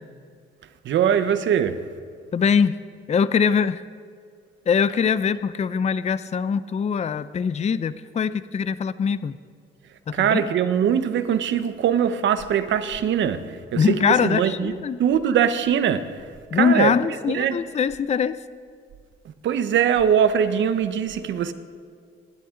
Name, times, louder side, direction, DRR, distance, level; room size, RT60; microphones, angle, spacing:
voice 1, 0.8-1.8 10.1-14.7 15.0-16.2 16.5-16.9 17.3-17.6 19.4-21.5, right 8 dB, 70° right, 1.0 m, -22 dB
voice 2, 2.3-2.8 3.1-3.8 4.7-9.4 10.1-10.4 13.7-15.0 16.5-18.4, left 6 dB, 35° left, 0.6 m, -22 dB
26.0 x 11.5 x 3.9 m
cardioid pair, 90°, 20 cm